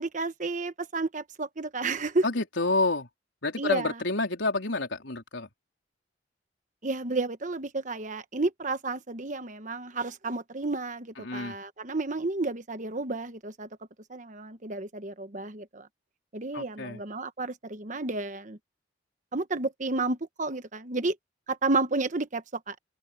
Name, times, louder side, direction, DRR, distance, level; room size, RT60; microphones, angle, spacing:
voice 1, 0.0-2.2 3.6-3.9 6.8-13.7 14.1-15.9 16.3-18.6 19.3-21.2 21.5-22.8, right 3 dB, 40° right, 1.2 m, -31 dB
voice 2, 2.2-3.1 3.4-5.5 11.2-11.6 16.5-17.0, left 3 dB, 80° left, 3.9 m, -29 dB
open air
head